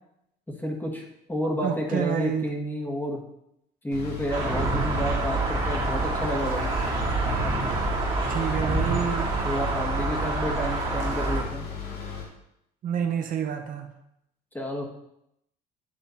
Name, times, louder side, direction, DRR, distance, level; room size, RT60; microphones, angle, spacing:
voice 1, 0.6-1.0 1.3-3.2 3.8-6.7 7.4-7.6 9.1-11.7 14.5-14.8, equal, 10° left, 0 dB, 1.7 m, -30 dB
voice 2, 1.6-2.5 8.3-9.3 12.8-13.9, right 8 dB, 55° right, 5 dB, 0.8 m, -28 dB
sound 1, 3.9-12.3, left 6 dB, 75° left, 2.0 m, -36 dB
sound 2, 4.3-11.4, right 3 dB, 30° right, 2.3 m, -27 dB
10.5 x 3.7 x 4.2 m, 0.79 s
cardioid pair, 110°, 17 cm